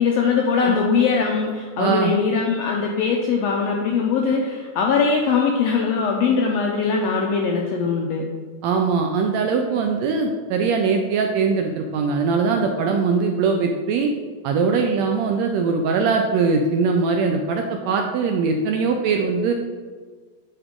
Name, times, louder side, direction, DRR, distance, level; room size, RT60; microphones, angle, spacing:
voice 1, 0.0-8.3, left 5 dB, 75° left, 0 dB, 1.5 m, -21 dB
voice 2, 1.8-2.1 8.6-14.1 14.4-19.5, right 4 dB, 80° right, 3 dB, 1.6 m, -21 dB
8.6 x 4.7 x 3.7 m, 1.5 s
omnidirectional pair, 3.5 m